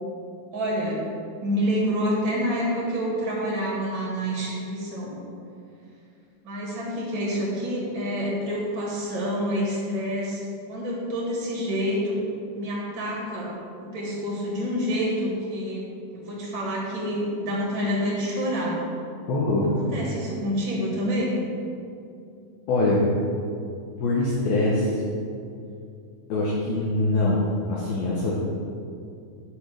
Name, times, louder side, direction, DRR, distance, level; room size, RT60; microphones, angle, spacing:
voice 1, 0.5-1.0 1.4-5.1 6.4-12.2 12.5-13.5 13.8-15.8 16.1-18.8 19.7-21.4, equal, 55° right, -5 dB, 1.3 m, -27 dB
voice 2, 19.3-19.9 22.7-23.1 24.0-25.0 26.3-28.3, left 2 dB, 70° left, -6 dB, 2.4 m, -23 dB
10.5 x 5.3 x 6.5 m, 2.4 s
omnidirectional pair, 5.6 m